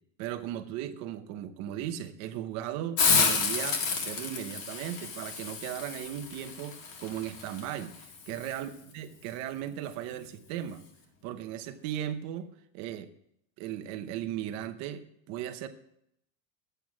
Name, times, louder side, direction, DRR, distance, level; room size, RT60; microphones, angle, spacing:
voice 1, 0.2-8.7 8.9-10.8 11.2-12.5 12.7-13.1 13.6-15.0 15.3-15.7, right 11 dB, 40° right, 10 dB, 0.9 m, -37 dB
Hiss, 3.0-8.6, left 5 dB, 50° left, 2.0 m, -30 dB
10.5 x 8.0 x 5.9 m, 0.73 s
cardioid pair, 180°, 40 cm